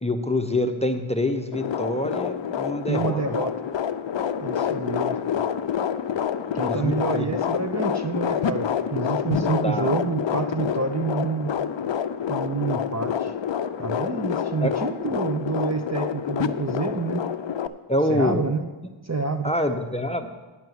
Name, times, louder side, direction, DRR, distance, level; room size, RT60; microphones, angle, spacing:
voice 1, 0.0-3.2 6.6-7.3 9.6-9.9 14.6-14.7 17.9-18.4 19.4-20.3, left 1 dB, 15° left, 5 dB, 0.7 m, -25 dB
sound 1, 1.5-17.7, left 8 dB, 60° left, 0.6 m, -27 dB
voice 2, 2.9-3.5 4.4-5.2 6.5-11.5 12.2-13.3 13.8-17.2 18.1-18.6 19.0-19.5, right 5 dB, 35° right, 7 dB, 0.7 m, -28 dB
9.5 x 5.9 x 7.8 m, 1.3 s
wide cardioid pair, 70°, 50 cm